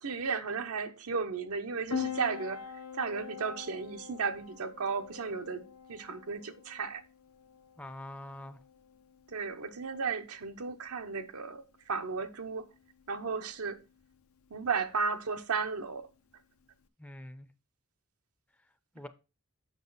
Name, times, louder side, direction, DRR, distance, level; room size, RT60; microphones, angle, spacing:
voice 1, 0.0-2.6 2.9-5.6 5.9-7.0 9.3-12.7 13.1-13.8 14.5-16.1, right 5 dB, 85° right, 0.9 m, -34 dB
Piano, 1.9-16.9, left 6 dB, 80° left, 0.7 m, -45 dB
voice 2, 7.8-8.6 17.0-17.5 18.9-19.1, left 1 dB, 5° left, 0.5 m, -44 dB
7.3 x 5.9 x 4.0 m
head